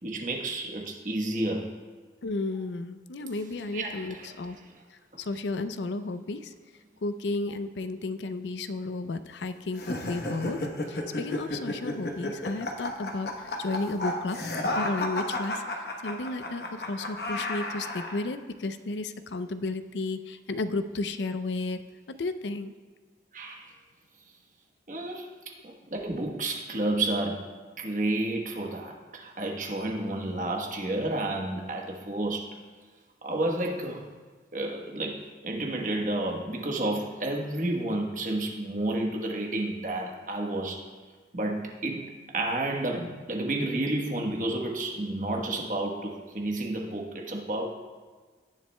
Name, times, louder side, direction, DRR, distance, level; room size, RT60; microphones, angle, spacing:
voice 1, 0.0-1.7 3.7-4.4 23.3-23.7 24.9-27.5 27.8-32.5 33.2-34.0 34.5-40.8 41.3-42.1 42.3-47.6, right 2 dB, 45° right, 1 dB, 1.2 m, -31 dB
voice 2, 2.2-4.6 5.2-6.5 7.0-10.6 10.9-14.4 14.7-21.8 22.2-22.7, left 2 dB, 80° left, 10 dB, 0.5 m, -33 dB
sound 1, 9.7-18.2, left 1 dB, 60° left, 1.0 m, -32 dB
17.5 x 7.2 x 2.2 m, 1.5 s
head